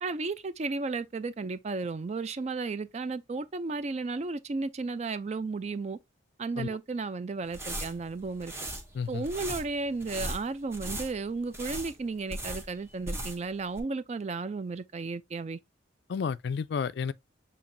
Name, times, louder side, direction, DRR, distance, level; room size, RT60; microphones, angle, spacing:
voice 1, 0.0-6.0 6.4-8.5 9.1-15.6, right 3 dB, 35° right, 0.3 m, -34 dB
sound 1, 7.4-13.5 13.8-13.9, right 1 dB, 15° right, 0.8 m, -38 dB
voice 2, 8.9-9.3 16.1-17.1, left 6 dB, 55° left, 0.3 m, -31 dB
6.9 x 2.8 x 2.6 m
head